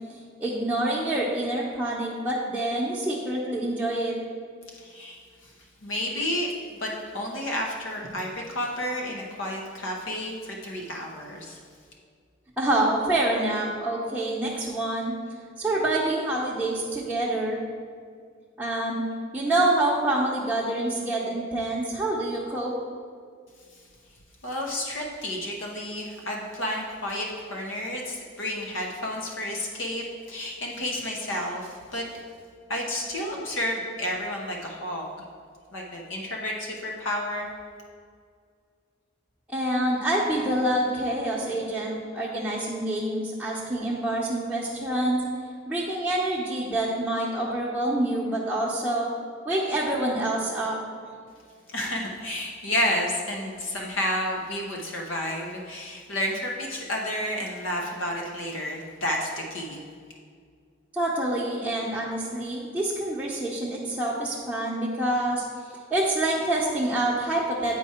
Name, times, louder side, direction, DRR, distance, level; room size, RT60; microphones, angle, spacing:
voice 1, 0.4-4.1 12.6-15.1 15.6-17.6 18.6-19.0 19.3-22.8 39.5-45.2 45.7-49.1 49.4-50.8 60.9-65.4 65.9-67.8, right 1 dB, 5° right, -7 dB, 0.8 m, -26 dB
voice 2, 4.7-5.5 5.8-6.5 6.7-11.6 23.7-23.8 24.4-32.0 32.7-35.1 35.7-37.5 51.7-59.8, left 1 dB, 75° left, 0 dB, 0.9 m, -31 dB
8.9 x 4.7 x 4.3 m, 2.1 s
head